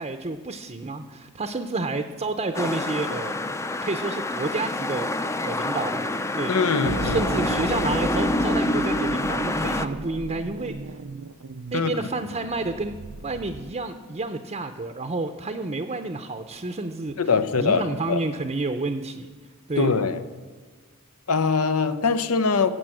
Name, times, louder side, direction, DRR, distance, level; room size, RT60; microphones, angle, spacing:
voice 1, 0.0-3.3 3.8-5.1 5.4-6.1 6.3-11.0 11.7-13.0 13.2-17.2 17.6-19.3 19.7-20.0, right 3 dB, 30° right, 7 dB, 0.6 m, -30 dB
sound 1, 2.5-9.9, left 2 dB, 15° left, 0.5 m, -27 dB
voice 2, 6.5-7.3 11.7-11.9 17.2-18.2 19.8-20.2 21.3-22.7, left 5 dB, 90° left, 11 dB, 0.8 m, -22 dB
sound 2, 6.9-13.8, right 3 dB, 85° right, 0.6 m, -35 dB
16.5 x 7.8 x 7.7 m, 1.4 s
head